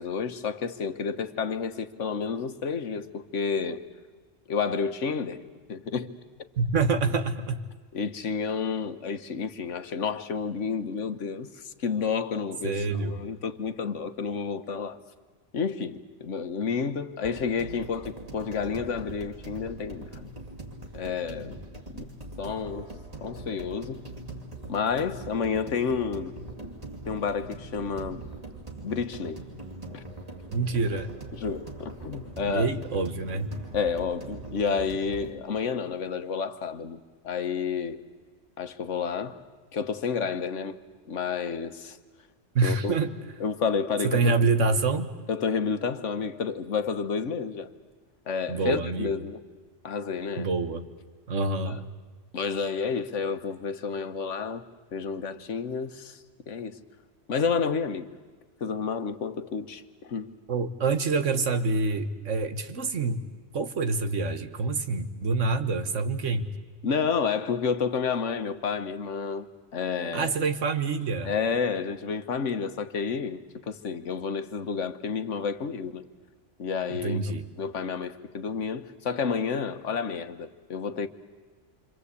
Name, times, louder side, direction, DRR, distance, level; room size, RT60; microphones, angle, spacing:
voice 1, 0.0-3.8 4.5-5.4 5.7-6.1 7.9-12.8 13.1-15.0 15.5-20.3 20.9-21.6 21.9-22.1 22.4-22.9 23.2-24.0 24.7-26.3 27.1-28.2 28.8-29.4 29.9-30.0 31.3-32.7 33.7-38.0 38.6-39.4 39.7-40.8 41.1-42.0 42.6-43.0 43.4-44.3 45.3-47.7 48.3-49.4 49.8-50.5 51.7-51.8 52.3-54.6 54.9-56.8 57.3-58.1 58.6-60.3 66.8-69.5 69.7-70.3 71.2-73.4 73.7-76.0 76.6-77.2 77.6-81.1, left 6 dB, 90° left, 1.5 m, -30 dB
voice 2, 6.6-7.6 12.6-13.2 30.5-31.1 32.4-33.5 42.5-43.1 44.0-45.1 48.5-49.1 50.4-50.8 51.3-51.8 60.5-63.2 63.5-66.5 70.1-71.3 76.9-77.4, right 4 dB, 85° right, 1.7 m, -26 dB
sound 1, 17.2-35.3, right 2 dB, 30° right, 2.5 m, -42 dB
28.0 x 25.5 x 8.3 m
omnidirectional pair, 1.2 m